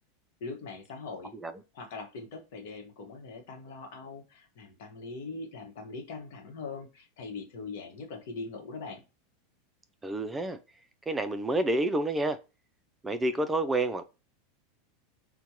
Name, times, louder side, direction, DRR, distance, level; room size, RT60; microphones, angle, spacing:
voice 1, 0.4-1.3 1.7-9.0, left 4 dB, 65° left, 1.0 m, -41 dB
voice 2, 10.0-10.6 11.1-12.4 13.0-14.0, right 2 dB, 15° right, 0.4 m, -28 dB
4.4 x 2.2 x 2.8 m
hypercardioid pair, 100°, 0 cm